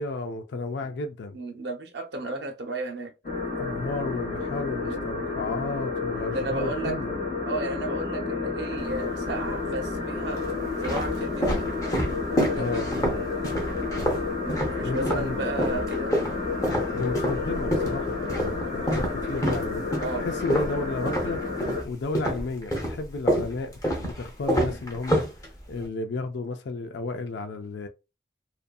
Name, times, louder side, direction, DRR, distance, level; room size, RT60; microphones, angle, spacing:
voice 1, 0.0-1.4 3.6-7.2 12.6-13.2 13.9-14.2 14.8-15.4 16.9-19.8 20.2-21.4 21.8-25.3 25.7-27.9, left 3 dB, 65° left, 0.4 m, -33 dB
voice 2, 1.3-3.1 4.8-5.1 6.3-7.0 7.5-10.4 10.8-11.7 12.3-13.0 14.4-16.1 20.0-20.3 24.4-24.7, right 2 dB, 60° right, 0.6 m, -33 dB
sound 1, 3.2-21.8, left 3 dB, 40° left, 1.0 m, -30 dB
sound 2, 8.8-9.5 10.2-15.3 15.6-21.9 22.2-25.9, equal, 15° left, 0.6 m, -28 dB
2.6 x 2.5 x 2.3 m
head